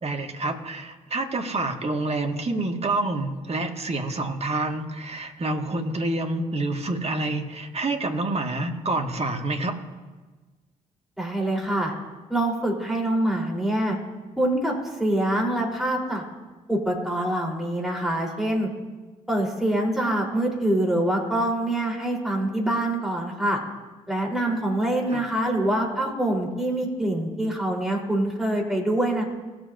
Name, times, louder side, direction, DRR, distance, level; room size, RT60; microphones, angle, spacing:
voice 1, 0.0-9.8 25.1-25.3, right 2 dB, 35° right, 4 dB, 1.9 m, -28 dB
voice 2, 11.2-11.9 12.3-14.0 14.4-16.2 16.7-18.7 19.3-23.6 24.1-29.2, right 1 dB, ahead, -2 dB, 3.9 m, -25 dB
19.5 x 7.5 x 2.7 m, 1.3 s
figure-of-eight pair, 40°, 18 cm